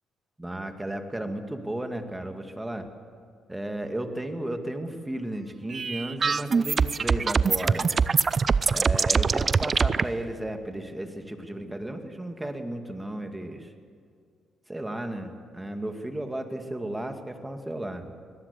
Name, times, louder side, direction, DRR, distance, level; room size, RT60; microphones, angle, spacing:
voice 1, 0.4-2.9 3.5-8.0 8.7-13.7 14.7-18.1, right 1 dB, 10° right, 6 dB, 2.2 m, -34 dB
sound 1, 5.7-10.0, right 5 dB, 40° right, 0.6 m, -23 dB
24.0 x 17.5 x 8.3 m, 2.2 s
cardioid pair, 90°, 0 cm